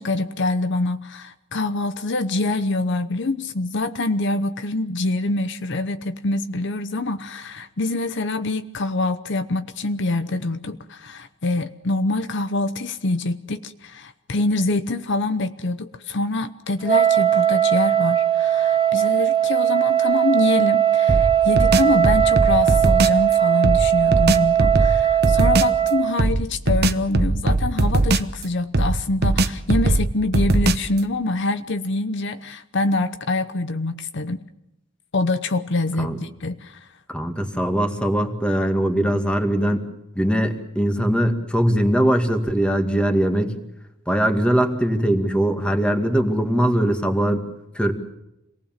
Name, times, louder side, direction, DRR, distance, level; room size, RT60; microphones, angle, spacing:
voice 1, 0.0-34.4 35.1-36.8, left 2 dB, 60° left, 10 dB, 0.9 m, -25 dB
Wind instrument woodwind instrument, 16.8-26.2, right 10 dB, 25° right, 0.9 m, -19 dB
sound 1, 21.1-23.2 23.6-25.8 26.2-28.4 28.7-31.0, right 2 dB, 55° right, 1.1 m, -20 dB
voice 2, 37.1-39.9 40.2-43.6 44.1-47.4 47.7-47.9, equal, 5° left, 5 dB, 2.2 m, -21 dB
27.0 x 19.0 x 7.5 m, 0.87 s
head